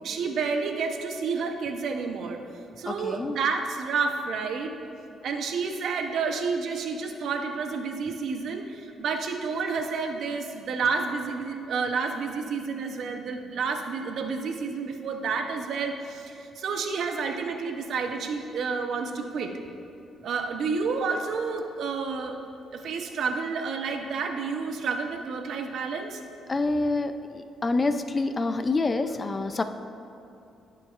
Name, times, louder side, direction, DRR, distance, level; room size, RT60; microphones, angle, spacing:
voice 1, 0.0-2.4 2.8-4.7 5.2-19.5 20.2-22.4 22.7-26.2, right 5 dB, 70° right, 5 dB, 0.7 m, -30 dB
voice 2, 2.9-3.4 26.5-29.6, left 3 dB, 30° left, 9 dB, 0.4 m, -27 dB
15.5 x 5.4 x 2.4 m, 2.7 s
cardioid pair, 90°, 0 cm